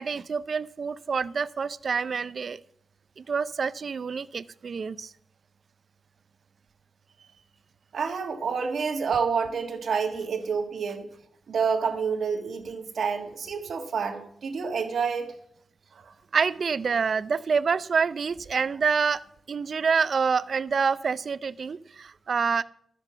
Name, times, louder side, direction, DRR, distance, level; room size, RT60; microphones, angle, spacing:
voice 1, 0.0-2.6 3.2-5.1 16.3-19.2 19.5-22.6, right 5 dB, 55° right, 17 dB, 0.4 m, -27 dB
voice 2, 7.9-11.1 11.5-15.3 15.9-16.1, right 5 dB, 70° right, 5 dB, 1.6 m, -28 dB
12.5 x 6.9 x 6.9 m, 0.69 s
wide cardioid pair, 105°, 0 cm